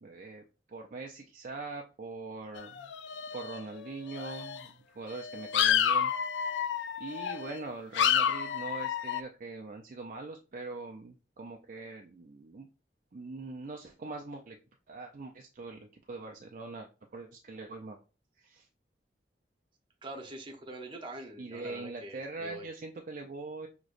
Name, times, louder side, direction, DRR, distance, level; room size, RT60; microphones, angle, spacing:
voice 1, 0.0-2.9 3.3-6.1 6.4-12.7 13.1-14.6 14.9-18.0 18.4-18.7 21.4-23.7, right 3 dB, 50° right, 0.5 m, -42 dB
sound 1, 2.6-3.8 4.1-4.6 5.1-7.6 7.9-9.2, left 8 dB, 90° left, 0.4 m, -30 dB
voice 2, 20.0-22.7, right 1 dB, 30° right, 0.9 m, -44 dB
6.2 x 3.0 x 2.5 m
head